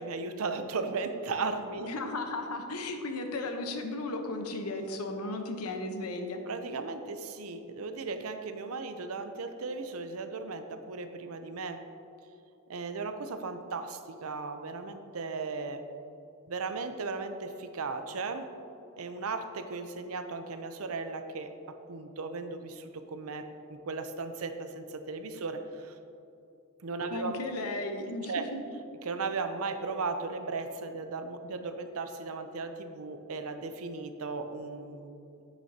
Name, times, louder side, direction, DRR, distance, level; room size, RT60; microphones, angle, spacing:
voice 1, 0.0-1.9 6.5-11.8 12.7-15.8 16.5-18.4 19.0-21.5 21.9-23.4 23.7-26.0 26.8-27.4 28.2-28.5 29.0-35.1, right 4 dB, 70° right, 8 dB, 0.6 m, -36 dB
voice 2, 1.8-6.4 27.1-28.6, left 2 dB, 85° left, 5 dB, 0.9 m, -35 dB
9.3 x 9.2 x 2.8 m, 2.7 s
head